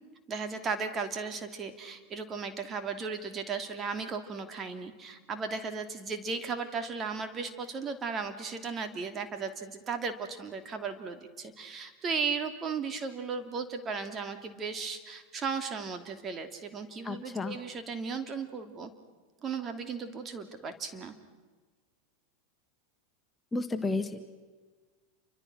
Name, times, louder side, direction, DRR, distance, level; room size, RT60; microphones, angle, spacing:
voice 1, 0.3-18.9 19.4-21.1, right 5 dB, 30° right, 8 dB, 2.9 m, -36 dB
voice 2, 17.0-17.6 23.5-24.2, left 3 dB, 15° left, 7 dB, 1.8 m, -32 dB
29.0 x 25.0 x 6.3 m, 1.4 s
hypercardioid pair, 95°, 0 cm